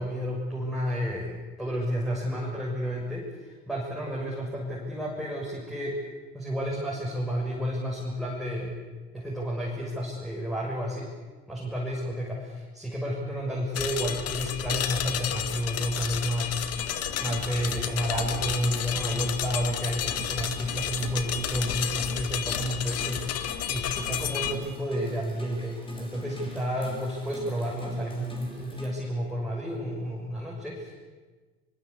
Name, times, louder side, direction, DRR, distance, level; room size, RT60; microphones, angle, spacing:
voice 1, 0.0-6.0 6.3-8.7 9.1-11.1 11.5-16.6 17.2-30.9, equal, ahead, -4 dB, 6.7 m, -31 dB
sound 1, 13.7-24.5, left 10 dB, 50° left, 2.3 m, -31 dB
sound 2, 16.8-28.9, left 1 dB, 15° left, 7.9 m, -45 dB
25.0 x 22.5 x 8.6 m, 1.3 s
supercardioid pair, 110°, 31 cm